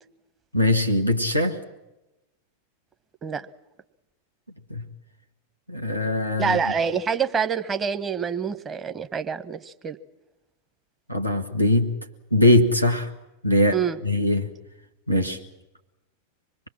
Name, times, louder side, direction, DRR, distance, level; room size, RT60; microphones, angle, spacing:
voice 1, 0.5-1.6 4.7-4.8 5.7-6.6 11.1-11.9 12.3-13.1 13.4-14.5 15.1-15.4, left 1 dB, 90° right, 3 dB, 1.5 m, -21 dB
voice 2, 6.4-10.0 13.7-14.0, right 6 dB, 20° right, 10 dB, 1.1 m, -26 dB
26.0 x 21.0 x 7.6 m, 0.99 s
figure-of-eight pair, 90°, 0 cm